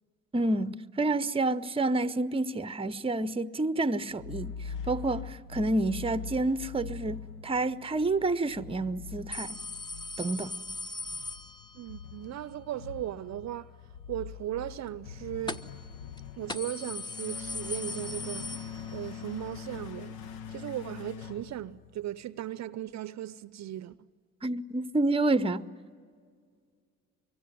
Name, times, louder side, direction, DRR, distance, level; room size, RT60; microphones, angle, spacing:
voice 1, 0.3-4.6 4.9-9.6 10.2-10.5 24.4-25.7, right 2 dB, 15° right, 0.8 m, -29 dB
sound 1, 4.1-22.2, left 7 dB, 75° left, 1.0 m, -43 dB
sound 2, 9.3-12.0 15.5-15.9 16.2-16.3 16.5-19.2 19.6-19.7 20.7-20.8, left 2 dB, 10° left, 1.1 m, -39 dB
voice 2, 11.7-13.7 14.1-15.6 16.4-18.5 18.9-20.2 20.5-24.1, right 12 dB, 45° right, 0.6 m, -37 dB
24.5 x 24.0 x 9.7 m
hypercardioid pair, 55°, 38 cm